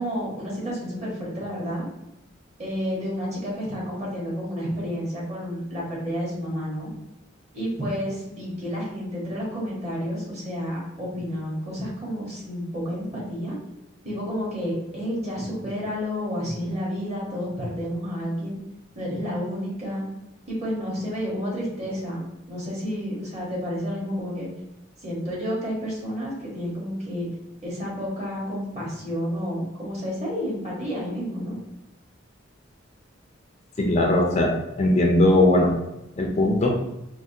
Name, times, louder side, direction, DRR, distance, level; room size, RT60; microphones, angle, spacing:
voice 1, 0.0-1.8 2.6-6.9 7.5-13.6 14.0-18.6 18.9-20.0 20.5-22.2 22.5-24.5 25.0-27.3 27.6-31.6, equal, 35° right, -5 dB, 1.1 m, -30 dB
voice 2, 33.8-35.8 36.2-36.8, left 1 dB, 35° left, 0 dB, 0.4 m, -19 dB
3.3 x 2.1 x 2.6 m, 0.89 s
head